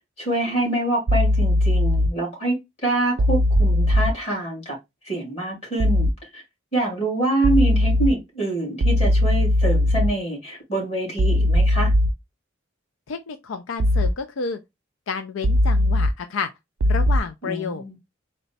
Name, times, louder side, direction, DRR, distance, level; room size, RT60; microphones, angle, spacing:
voice 1, 0.2-4.8 5.1-6.4 6.7-11.9 17.4-18.0, right 2 dB, 35° left, 2.4 m, -25 dB
sound 1, 1.1-2.1 3.2-4.1 5.8-6.1 7.4-8.1 8.8-10.1 11.2-12.1 13.8-14.1 15.4-16.1 16.8-17.2, left 1 dB, 70° right, 0.4 m, -18 dB
voice 2, 13.1-14.6 15.1-16.5 16.8-18.0, left 5 dB, 80° left, 0.4 m, -30 dB
4.0 x 2.2 x 4.0 m
head